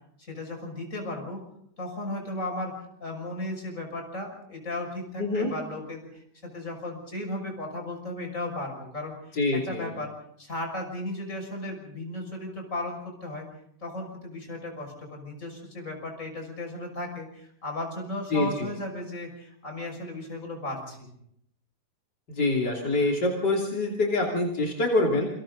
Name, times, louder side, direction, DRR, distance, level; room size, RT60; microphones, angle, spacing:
voice 1, 0.2-1.4 1.8-13.5 13.8-21.1, left 1 dB, 50° left, 2 dB, 6.6 m, -35 dB
voice 2, 5.2-5.5 9.3-9.9 18.3-18.7 22.3-25.3, left 2 dB, 85° left, -1 dB, 3.7 m, -25 dB
28.5 x 26.5 x 4.0 m, 0.72 s
omnidirectional pair, 1.8 m